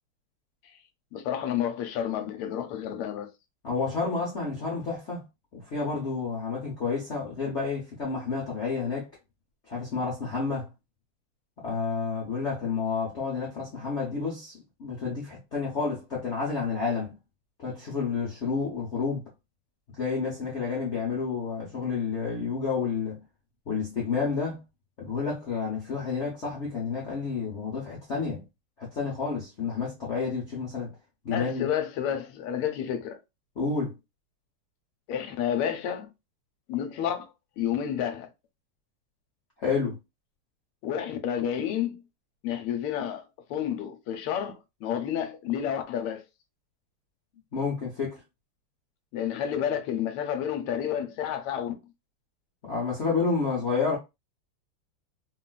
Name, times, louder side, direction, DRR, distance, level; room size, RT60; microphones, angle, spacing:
voice 1, 1.1-3.3 31.3-33.2 35.1-36.1 36.7-38.3 40.8-42.0 42.4-43.2 43.5-46.2 49.1-51.7, left 9 dB, 85° left, 1.5 m, -30 dB
voice 2, 3.6-5.2 5.5-9.1 9.7-10.7 11.6-17.2 17.6-19.3 20.0-23.2 23.7-24.6 25.0-28.4 28.8-30.9 31.2-31.7 33.6-34.0 39.6-40.0 47.5-48.2 52.6-54.0, left 5 dB, 65° left, 0.7 m, -30 dB
3.5 x 2.3 x 2.2 m
omnidirectional pair, 2.4 m